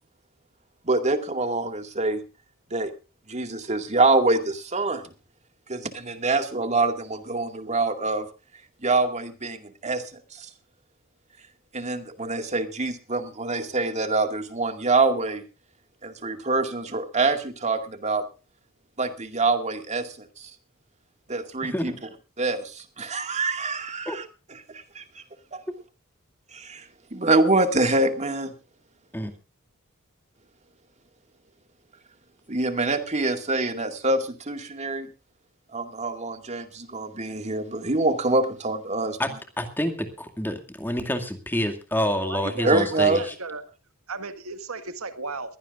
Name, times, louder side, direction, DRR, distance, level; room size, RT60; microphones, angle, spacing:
voice 1, 0.8-2.2 2.7-2.9 3.3-5.0 5.7-8.3 8.8-10.5 11.7-15.4 16.0-18.3 19.0-20.5 21.3-21.9 22.4-25.2 25.5-25.6 26.5-28.5 32.5-35.1 35.7-39.2 42.6-43.2, right 3 dB, 35° right, 7 dB, 2.1 m, -25 dB
voice 2, 21.6-22.0 24.1-24.2 29.1-29.3 39.2-39.3 39.6-43.2, left 1 dB, 10° left, 6 dB, 2.3 m, -28 dB
voice 3, 42.1-43.6 44.1-45.6, right 3 dB, 85° right, 9 dB, 1.8 m, -35 dB
22.0 x 16.0 x 2.5 m, 0.33 s
head